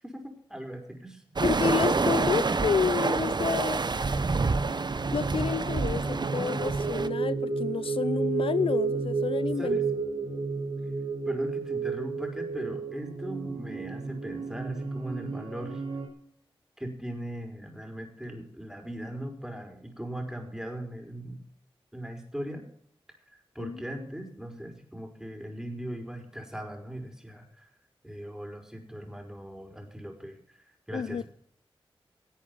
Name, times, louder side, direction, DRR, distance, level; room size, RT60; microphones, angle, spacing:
voice 1, 0.0-1.2 1.8-2.1 4.1-4.8 9.4-9.9 11.3-15.8 16.8-21.4 21.9-22.7 23.3-27.7 28.0-31.3, right 1 dB, 5° right, 5.4 m, -39 dB
voice 2, 1.4-3.8 5.1-9.8 23.6-23.8 30.9-31.2, left 6 dB, 70° left, 0.5 m, -29 dB
sound 1, 1.4-7.1, right 4 dB, 50° right, 1.0 m, -28 dB
sound 2, 4.0-16.1, right 4 dB, 70° right, 4.1 m, -32 dB
18.5 x 8.4 x 5.4 m
cardioid pair, 50°, 10 cm